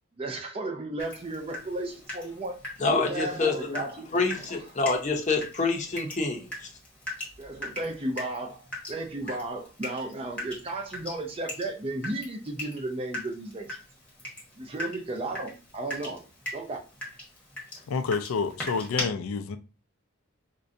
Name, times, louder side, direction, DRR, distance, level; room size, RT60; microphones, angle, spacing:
voice 1, 0.2-4.1 7.4-13.8 14.6-16.2 16.5-16.8, right 2 dB, 25° right, 0.4 m, -34 dB
Water tap faucet / Drip, 1.0-19.0, left 1 dB, 5° left, 0.9 m, -41 dB
voice 2, 2.8-3.8 4.1-6.7, left 3 dB, 35° left, 0.6 m, -27 dB
voice 3, 17.9-19.6, left 5 dB, 85° left, 0.3 m, -29 dB
3.7 x 2.2 x 2.5 m
head